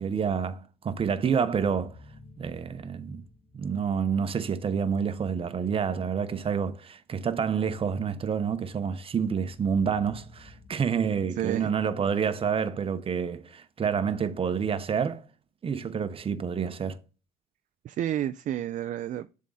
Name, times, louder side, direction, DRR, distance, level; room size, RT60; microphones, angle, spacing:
voice 1, 0.0-1.9 2.4-3.2 3.5-15.2 15.6-17.0, right 6 dB, 35° right, 0.9 m, -28 dB
sound 1, 1.5-4.5 9.5-12.7, left 3 dB, 50° left, 1.8 m, -54 dB
voice 2, 11.4-11.7 17.8-19.3, right 11 dB, 50° right, 0.4 m, -30 dB
7.3 x 3.7 x 4.0 m
cardioid pair, 110°, 17 cm